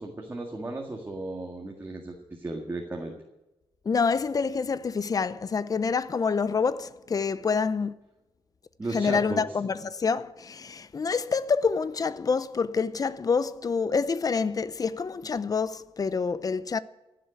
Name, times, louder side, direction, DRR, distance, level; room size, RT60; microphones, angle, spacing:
voice 1, 0.0-3.1 8.8-9.4, right 2 dB, 25° right, 1.9 m, -35 dB
voice 2, 3.8-7.9 8.9-16.8, left 5 dB, 40° left, 0.7 m, -27 dB
15.0 x 7.7 x 9.2 m
wide cardioid pair, 110°, 10 cm